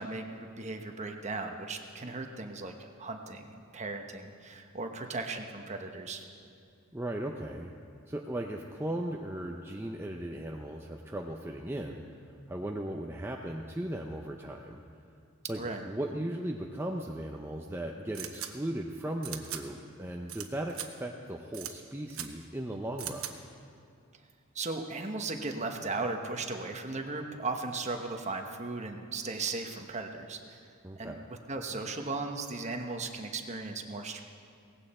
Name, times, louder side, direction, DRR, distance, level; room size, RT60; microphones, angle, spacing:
voice 1, 0.0-6.2 15.6-15.8 24.5-30.6 31.0-31.1 31.5-34.2, right 3 dB, 35° right, 4 dB, 1.1 m, -37 dB
voice 2, 6.9-7.8 8.1-14.8 15.5-23.4 30.8-31.2, right 1 dB, 10° right, 1 dB, 0.6 m, -37 dB
sound 1, 18.1-18.5 19.2-19.6 20.3-20.4 20.7-20.9 21.5-21.7 22.1-22.3 23.0-23.3, right 11 dB, 70° right, 1.1 m, -38 dB
18.0 x 15.5 x 4.3 m, 2.5 s
head